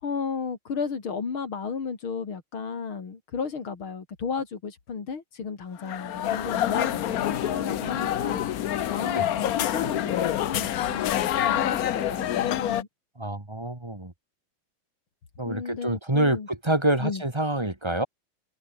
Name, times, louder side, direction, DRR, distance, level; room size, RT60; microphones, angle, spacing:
voice 1, 0.0-8.4 8.9-12.9 15.5-16.5 17.0-17.2, left 5 dB, 80° left, 3.7 m, -34 dB
sound 1, 5.8-12.8, left 11 dB, 60° left, 1.0 m, -27 dB
voice 2, 13.2-14.1 15.4-18.1, right 1 dB, 15° right, 2.0 m, -26 dB
omnidirectional pair, 2.2 m